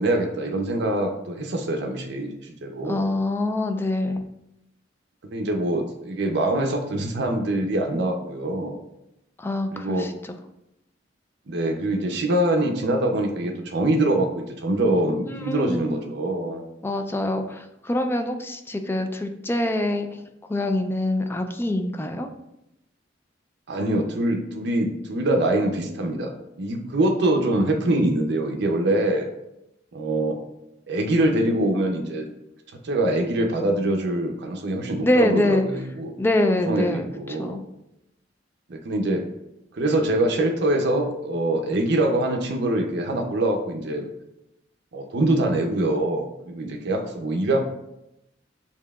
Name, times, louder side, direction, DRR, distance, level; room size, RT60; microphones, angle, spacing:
voice 1, 0.0-3.1 5.2-8.8 9.7-10.1 11.5-16.6 23.7-26.3 26.6-29.3 29.9-30.4 30.9-32.2 32.8-36.1 36.7-37.6 38.7-39.2 39.7-44.1 44.9-47.6, right 1 dB, 65° right, 2 dB, 0.5 m, -24 dB
voice 2, 2.8-4.2 9.4-10.1 15.3-16.0 16.8-20.2 20.5-22.3 35.0-35.7 36.2-37.6, left 1 dB, 10° left, 6 dB, 0.3 m, -25 dB
6.7 x 2.8 x 2.3 m, 0.85 s
head